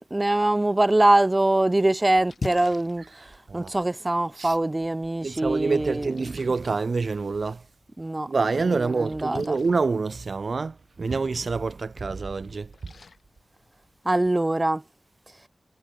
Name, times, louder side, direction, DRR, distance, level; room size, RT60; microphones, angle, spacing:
voice 1, 0.0-6.1 8.0-8.3 8.7-9.6 14.0-14.8, right 1 dB, 25° right, 1.2 m, -23 dB
Splash splatter, 1.3-14.3, left 4 dB, 75° left, 4.6 m, -46 dB
voice 2, 5.2-7.6 8.3-12.7, right 4 dB, 65° right, 1.0 m, -27 dB
cardioid pair, 55°, 0 cm